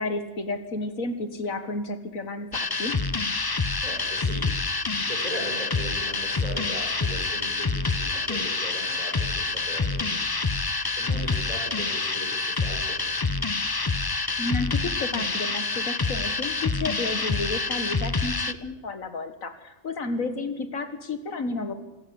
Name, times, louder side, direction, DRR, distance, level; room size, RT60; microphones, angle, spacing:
voice 1, 0.0-3.0 14.4-21.7, left 3 dB, 75° left, 10 dB, 2.1 m, -31 dB
sound 1, 2.5-18.5, left 3 dB, 25° left, 0.6 m, -27 dB
voice 2, 3.8-4.5 5.0-10.2 10.9-13.0, right 1 dB, 25° right, 0 dB, 6.8 m, -38 dB
27.0 x 14.5 x 8.8 m, 1.0 s
omnidirectional pair, 1.4 m